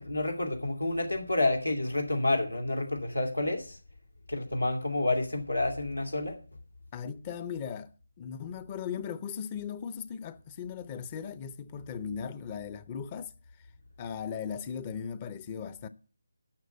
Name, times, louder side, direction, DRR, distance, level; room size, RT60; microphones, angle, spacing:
voice 1, 0.0-3.8 4.3-6.3, left 2 dB, 80° left, 2.4 m, -29 dB
voice 2, 6.9-7.9 8.2-13.3 14.0-15.9, left 7 dB, 20° left, 0.6 m, -38 dB
11.5 x 6.5 x 7.7 m
figure-of-eight pair, 155°, 0 cm